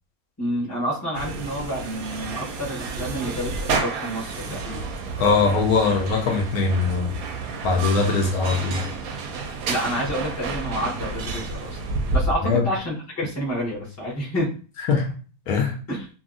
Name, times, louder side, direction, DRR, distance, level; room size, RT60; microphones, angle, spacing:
voice 1, 0.4-4.9 9.7-11.8 12.1-14.5 15.9-16.1, equal, 15° left, -5 dB, 0.6 m, -29 dB
sound 1, 1.1-12.3, right 4 dB, 70° right, 0.9 m, -30 dB
voice 2, 5.2-7.1 7.6-8.8 12.4-12.6 14.9-15.1 15.5-15.7, left 4 dB, 70° left, 1 dB, 1.0 m, -21 dB
2.7 x 2.6 x 2.4 m, 0.38 s
omnidirectional pair, 1.8 m